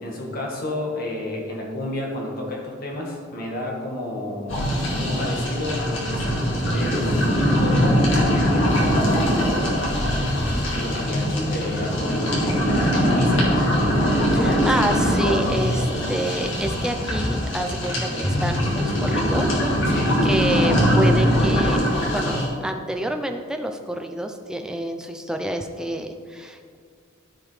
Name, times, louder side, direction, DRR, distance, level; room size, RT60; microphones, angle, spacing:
voice 1, 0.0-4.6 4.9-9.9 10.2-13.7 19.9-20.2, left 1 dB, 45° left, -1 dB, 1.6 m, -32 dB
sound 1, 4.5-22.5, equal, 65° left, 2.3 m, -21 dB
voice 2, 14.3-19.5 19.8-21.8 22.1-26.8, right 1 dB, 5° right, 4 dB, 0.4 m, -28 dB
14.5 x 5.3 x 3.3 m, 2.1 s
head